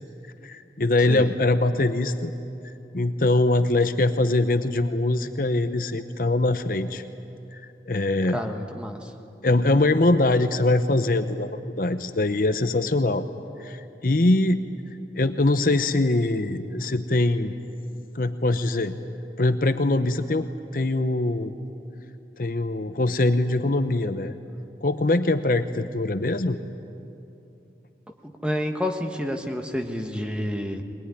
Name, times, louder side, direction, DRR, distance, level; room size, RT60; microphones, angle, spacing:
voice 1, 0.4-2.3 2.9-7.0 7.5-8.4 9.4-13.3 13.6-14.6 15.2-17.5 18.1-18.9 19.4-21.5 22.4-24.3 24.8-26.6, left 2 dB, 50° left, 9 dB, 0.8 m, -23 dB
voice 2, 8.3-9.1 28.2-30.8, equal, 5° right, 4 dB, 1.4 m, -29 dB
22.0 x 21.0 x 10.0 m, 2.7 s
head